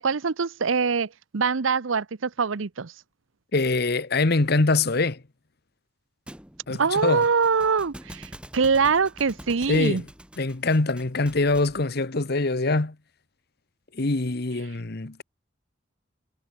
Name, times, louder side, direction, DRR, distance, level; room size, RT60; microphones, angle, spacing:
voice 1, 0.0-2.9 6.7-10.0, right 5 dB, 75° right, 0.7 m, -24 dB
voice 2, 3.5-5.2 6.7-7.2 9.7-10.0 10.4-12.9 13.9-15.2, left 3 dB, 55° left, 1.1 m, -24 dB
Thump thud, 6.3-11.8, equal, 5° right, 3.6 m, -45 dB
head